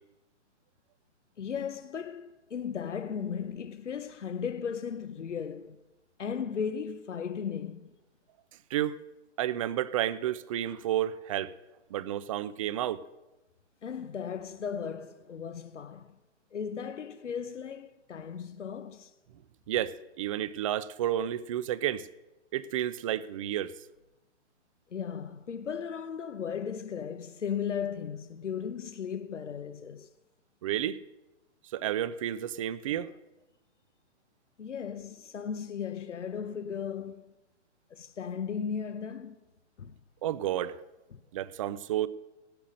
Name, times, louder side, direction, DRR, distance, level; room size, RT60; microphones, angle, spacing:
voice 1, 1.4-5.8 6.2-7.9 13.8-16.2 16.5-19.1 24.9-30.1 34.6-37.3 37.9-39.4 39.8-40.0 41.1-41.2, left 7 dB, 85° left, 1.0 m, -36 dB
voice 2, 9.4-11.5 11.9-13.0 19.7-22.1 22.5-23.7 30.6-31.0 31.7-33.1 40.2-40.8 41.3-42.1, right 11 dB, 30° right, 0.5 m, -31 dB
16.5 x 10.5 x 6.4 m
hypercardioid pair, 140°, 35 cm